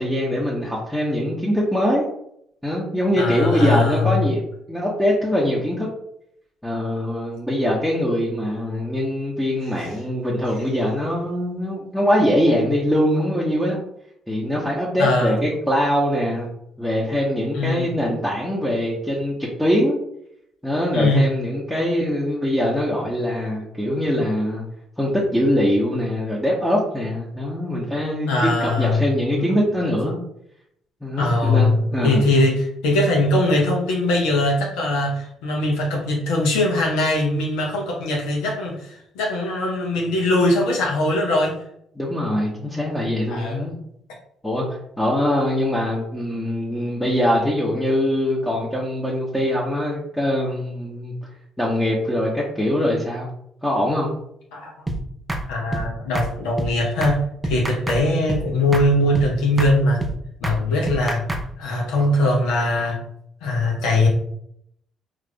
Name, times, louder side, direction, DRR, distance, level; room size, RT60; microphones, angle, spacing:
voice 1, 0.0-2.1 2.6-4.4 4.7-5.9 6.6-13.8 14.3-16.5 16.8-20.0 20.6-24.6 25.0-30.2 31.0-32.3 41.9-43.7 44.4-44.7 45.0-51.1 51.6-53.3 53.6-54.1, equal, 5° left, -5 dB, 0.9 m, -22 dB
voice 2, 3.2-4.3 15.0-15.4 17.5-17.9 20.9-21.3 28.3-29.0 29.4-29.5 31.2-41.5 43.3-43.7 54.5-54.7 55.5-57.2 57.4-60.0 60.4-61.2 61.6-63.0 63.4-64.1, left 2 dB, 70° left, -2 dB, 0.7 m, -21 dB
sound 1, 54.9-55.0 55.3-55.4 55.7-55.9 56.1-56.3 56.6-56.7 57.0-57.2 57.4-58.0 58.3-58.4 58.7-58.9 59.1-59.3 59.6-59.7 60.0-60.1 60.4-60.6 60.9-61.4, right 1 dB, 15° right, 0.5 m, -26 dB
4.6 x 2.5 x 2.2 m, 0.73 s
figure-of-eight pair, 45°, 0 cm